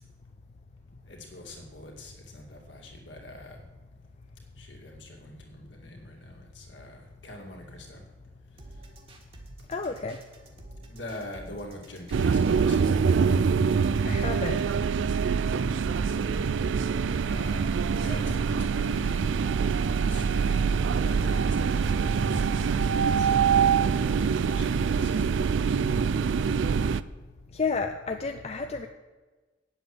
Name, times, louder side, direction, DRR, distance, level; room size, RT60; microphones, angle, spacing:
voice 1, 1.0-3.6 4.6-8.0 8.7-8.8 9.8-10.0 10.9-13.1 16.3-16.8 17.2-19.3 19.8-23.5 24.5-26.3, left 1 dB, 65° left, 0 dB, 2.4 m, -45 dB
sound 1, 8.6-24.6, right 1 dB, 30° right, 1.6 m, -49 dB
voice 2, 9.7-10.2 14.0-14.6 27.5-28.9, left 4 dB, 35° left, 6 dB, 0.5 m, -31 dB
sound 2, 12.1-27.0, right 6 dB, 70° right, 0.4 m, -25 dB
9.4 x 8.0 x 7.8 m, 1.3 s
head